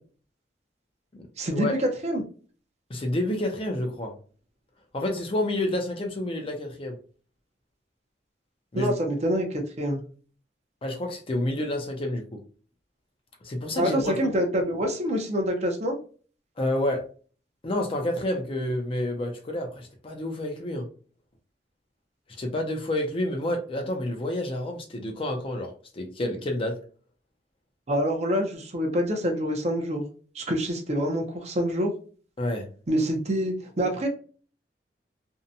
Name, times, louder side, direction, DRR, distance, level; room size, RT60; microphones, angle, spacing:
voice 1, 1.4-2.2 8.8-10.0 13.8-16.0 27.9-30.0 30.3-31.9 32.9-34.1, equal, 40° right, 2 dB, 0.6 m, -26 dB
voice 2, 2.9-4.1 4.9-7.0 8.7-8.9 10.8-12.2 13.4-14.4 16.6-17.0 17.6-20.9 22.4-26.8 32.4-32.7, left 1 dB, 30° left, 3 dB, 0.5 m, -29 dB
2.7 x 2.1 x 2.6 m, 0.40 s
head